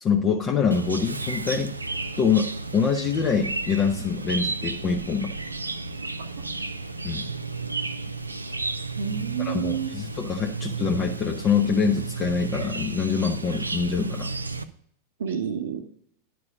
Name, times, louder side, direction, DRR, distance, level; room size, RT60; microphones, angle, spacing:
voice 1, 0.0-1.7 2.2-5.3 7.0-7.2 9.4-14.3, left 6 dB, 30° left, 1 dB, 0.9 m, -25 dB
Chirp tweet, 0.7-14.6, right 3 dB, 80° right, 0.5 m, -33 dB
voice 2, 8.9-9.9 15.2-15.8, right 7 dB, 65° right, 5 dB, 1.2 m, -29 dB
11.0 x 4.7 x 6.3 m, 0.68 s
figure-of-eight pair, 90°, 0 cm